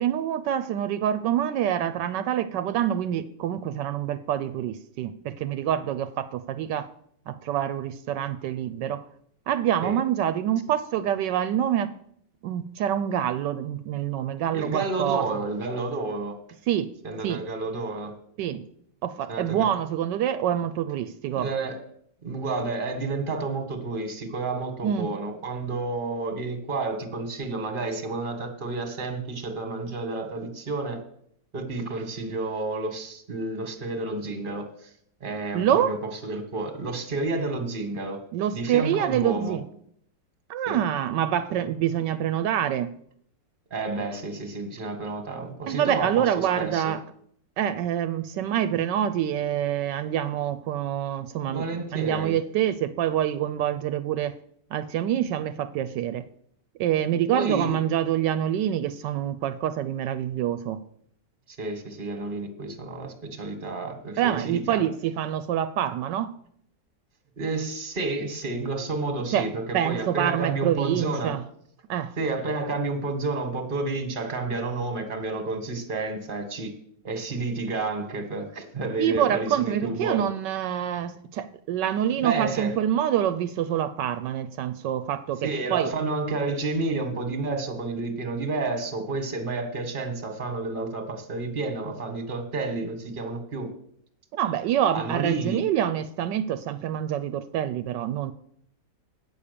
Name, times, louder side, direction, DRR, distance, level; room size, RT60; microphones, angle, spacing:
voice 1, 0.0-6.9 7.3-9.0 9.5-11.9 12.4-15.3 16.7-16.9 17.2-17.4 18.4-18.6 19.0-21.5 24.8-25.1 35.5-36.0 38.3-39.6 40.5-42.9 45.7-47.0 47.6-51.6 51.9-54.3 54.7-56.2 56.8-60.8 64.2-66.3 69.3-69.5 69.7-71.4 71.9-72.1 79.0-85.9 94.3-98.3, right 10 dB, 80° right, 11 dB, 1.2 m, -26 dB
voice 2, 14.5-16.3 17.0-18.1 19.3-19.7 21.4-21.8 22.2-31.0 31.5-34.9 35.2-36.0 36.2-38.2 38.5-39.6 40.7-40.8 43.7-46.9 51.5-52.4 57.3-57.8 61.6-64.8 67.4-71.4 72.2-76.7 77.0-80.2 82.2-82.7 85.4-93.7 94.9-95.6, right 3 dB, 30° right, 7 dB, 1.5 m, -30 dB
8.8 x 7.1 x 6.7 m, 0.67 s
omnidirectional pair, 1.9 m